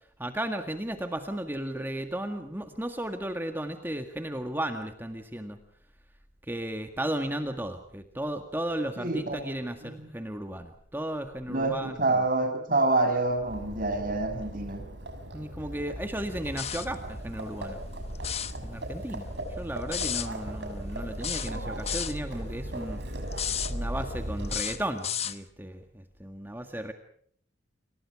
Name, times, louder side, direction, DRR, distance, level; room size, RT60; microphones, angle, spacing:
voice 1, 0.2-5.6 6.5-12.2 15.3-17.8 18.6-19.3 19.6-23.0 23.7-26.9, right 1 dB, 10° right, 6 dB, 1.8 m, -34 dB
voice 2, 9.0-10.1 11.5-14.9, right 2 dB, 45° right, 6 dB, 6.2 m, -27 dB
Livestock farm animals working animals, 13.3-24.9, right 1 dB, 60° right, 5.6 m, -37 dB
sound 1, 16.6-16.9 18.1-18.6 19.9-20.3 21.2-22.2 23.3-23.7 24.4-25.4, left 9 dB, 30° left, 1.1 m, -32 dB
30.0 x 27.5 x 4.8 m, 0.62 s
head